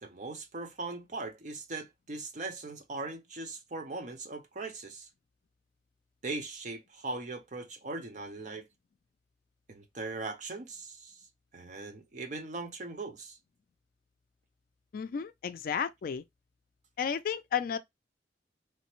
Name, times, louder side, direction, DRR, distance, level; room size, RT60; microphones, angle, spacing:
voice 1, 0.0-5.1 6.2-8.7 9.7-11.2 11.5-13.4, right 3 dB, 40° right, 0.6 m, -40 dB
voice 2, 14.9-16.2 17.0-17.8, left 7 dB, 50° left, 0.3 m, -32 dB
3.1 x 2.1 x 2.9 m
head